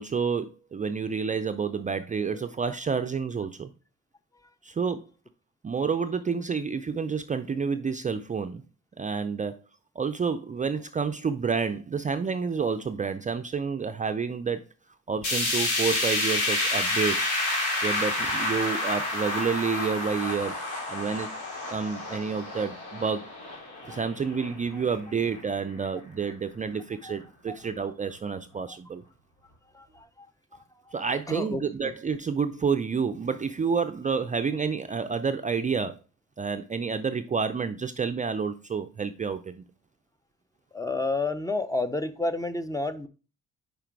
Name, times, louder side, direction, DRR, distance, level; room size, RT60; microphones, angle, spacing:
voice 1, 0.0-3.7 4.6-5.0 5.6-8.6 9.0-9.5 10.0-14.6 15.1-17.3 17.8-20.5 20.9-21.3 21.7-23.3 23.9-29.0 30.9-36.0 36.4-39.6, right 5 dB, 25° right, 9 dB, 0.4 m, -29 dB
sound 1, 15.2-25.4 25.8-25.9 26.3-26.4 27.2-27.3, left 2 dB, 80° left, 2.9 m, -29 dB
voice 2, 29.7-30.3 31.3-31.9 40.7-43.1, left 2 dB, 10° left, 11 dB, 0.6 m, -30 dB
5.0 x 4.9 x 4.6 m, 0.34 s
cardioid pair, 90°, 30 cm